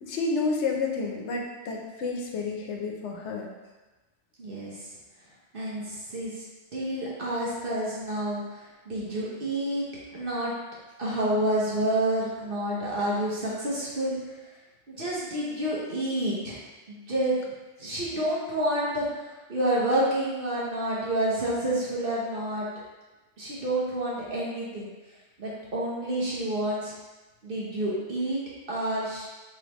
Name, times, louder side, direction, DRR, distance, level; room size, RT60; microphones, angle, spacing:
voice 1, 0.0-3.5, left 4 dB, 80° left, 0 dB, 1.0 m, -30 dB
voice 2, 4.4-4.9 5.5-6.4 6.7-9.9 10.1-10.5 11.0-14.4 14.9-16.6 16.9-17.5 17.8-22.7 23.4-24.9 25.4-26.9 27.4-28.4 28.7-29.3, right 1 dB, 55° right, -6 dB, 1.1 m, -29 dB
4.5 x 3.3 x 3.1 m, 1.2 s
omnidirectional pair, 1.2 m